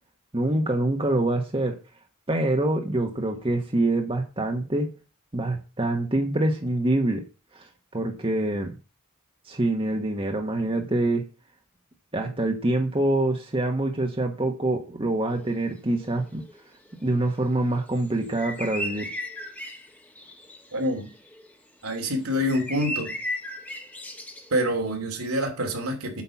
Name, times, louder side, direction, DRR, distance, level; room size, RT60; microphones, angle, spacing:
voice 1, 0.3-1.8 2.3-4.9 5.3-7.2 7.5-8.7 9.5-11.2 12.1-16.4 17.0-19.1, right 2 dB, 25° right, 1.2 m, -25 dB
sound 1, 15.3-15.6 15.9-21.5 21.8-24.7, equal, 5° left, 1.3 m, -37 dB
voice 2, 20.7-21.1 21.8-23.2 24.5-26.2, equal, 80° right, 2.8 m, -26 dB
8.5 x 5.4 x 7.1 m
head